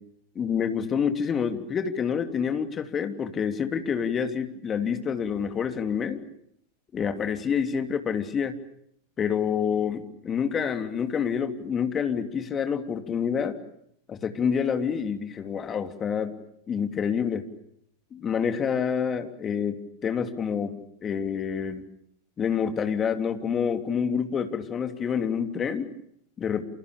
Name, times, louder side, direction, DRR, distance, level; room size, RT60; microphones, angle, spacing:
voice 1, 0.3-6.2 6.9-8.6 9.2-13.6 14.1-16.4 16.7-17.5 18.1-21.8 22.4-25.9 26.4-26.6, left 7 dB, 25° left, 8 dB, 3.1 m, -27 dB
29.0 x 28.5 x 6.8 m, 0.71 s
figure-of-eight pair, 90°, 0 cm